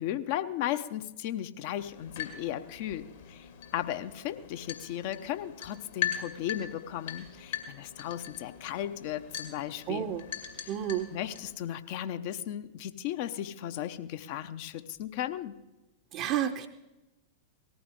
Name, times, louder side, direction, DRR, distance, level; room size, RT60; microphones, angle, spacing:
voice 1, 0.0-3.5 3.7-10.2 10.6-10.7 11.1-15.6, left 11 dB, 50° left, 11 dB, 0.7 m, -36 dB
sound 1, 1.8-11.5, left 10 dB, 65° left, 2.2 m, -41 dB
voice 2, 9.9-10.3 10.7-11.1 16.1-16.7, right 10 dB, 40° right, 5 dB, 0.7 m, -31 dB
18.5 x 14.0 x 3.7 m, 1.0 s
figure-of-eight pair, 90°, 0 cm